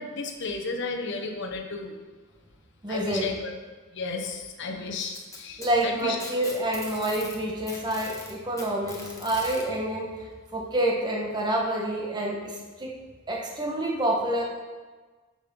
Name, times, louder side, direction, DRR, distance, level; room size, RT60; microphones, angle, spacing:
voice 1, 0.0-2.0 2.9-3.5 3.9-6.2, left 3 dB, 60° left, 3 dB, 1.0 m, -33 dB
voice 2, 2.8-3.3 4.7-4.8 5.6-12.9 13.3-14.4, right 1 dB, 20° right, -1 dB, 1.4 m, -28 dB
Packing tape duct tape, 4.9-7.4 7.7-9.6 10.7-10.8 11.4-11.5 12.3-12.4, left 3 dB, 15° left, 1.4 m, -41 dB
8.3 x 6.2 x 5.5 m, 1.4 s
head